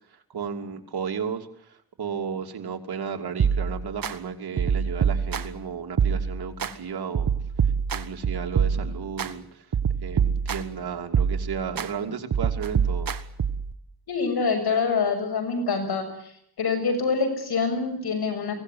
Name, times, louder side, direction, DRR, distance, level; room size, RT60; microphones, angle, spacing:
voice 1, 0.3-7.3 7.9-9.7 10.0-13.1, right 6 dB, 80° right, 4 dB, 3.0 m, -33 dB
sound 1, 3.4-4.1 4.6-5.6 6.0-6.7 7.1-9.3 9.7-10.8 11.1-11.9 12.3-13.7, right 7 dB, 65° right, 1.5 m, -25 dB
voice 2, 14.1-16.1 16.6-18.5, left 4 dB, 80° left, 6 dB, 6.8 m, -25 dB
23.5 x 18.0 x 9.5 m, 0.72 s
cardioid pair, 65°, 37 cm